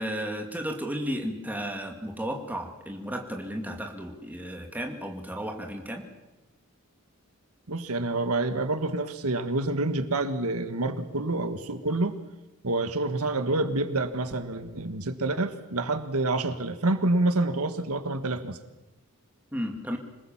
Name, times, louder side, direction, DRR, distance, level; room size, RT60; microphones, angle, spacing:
voice 1, 0.0-6.1 19.5-20.0, equal, 10° right, 2 dB, 2.4 m, -33 dB
voice 2, 7.7-12.2 12.6-18.6, right 2 dB, 90° right, 9 dB, 1.6 m, -27 dB
26.5 x 20.0 x 7.3 m, 1.0 s
head